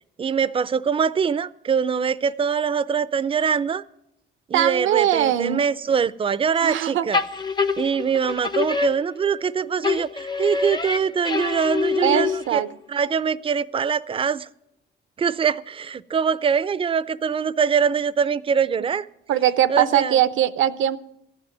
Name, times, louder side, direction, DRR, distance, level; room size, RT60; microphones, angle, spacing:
voice 1, 0.2-3.8 4.5-7.2 7.8-12.6 12.9-14.5 15.2-19.1 19.7-20.2, right 6 dB, 25° right, 0.4 m, -23 dB
voice 2, 4.5-5.6 6.6-7.1 12.0-12.7 19.3-21.0, right 11 dB, 75° right, 0.6 m, -21 dB
sound 1, 7.1-9.5 9.8-12.7, left 4 dB, 20° left, 0.5 m, -26 dB
14.0 x 6.1 x 9.0 m
cardioid pair, 90°, 20 cm